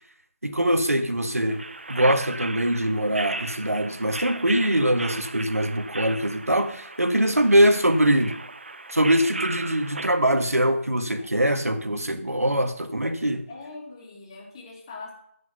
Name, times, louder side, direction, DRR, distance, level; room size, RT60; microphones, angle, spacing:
voice 1, 0.4-1.6 1.9-8.3 8.9-13.4, right 1 dB, 75° right, 1.6 m, -22 dB
sound 1, 1.5-10.1, right 2 dB, 50° right, 0.8 m, -36 dB
voice 2, 11.2-11.5 13.5-15.1, left 3 dB, 20° left, 2.5 m, -42 dB
15.0 x 5.5 x 5.7 m
figure-of-eight pair, 160°, 8 cm